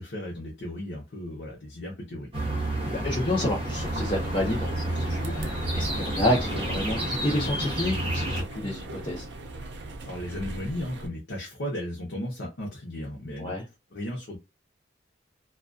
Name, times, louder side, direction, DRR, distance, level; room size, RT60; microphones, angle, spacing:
voice 1, 0.0-2.5 10.1-13.5 13.9-14.4, left 1 dB, 70° left, 0.7 m, -35 dB
sound 1, 2.3-8.4, right 1 dB, 30° right, 0.8 m, -30 dB
voice 2, 2.7-9.3 13.4-13.6, left 1 dB, 30° left, 0.5 m, -29 dB
sound 2, 3.7-11.1, right 1 dB, 70° right, 0.5 m, -39 dB
2.3 x 2.2 x 2.4 m
head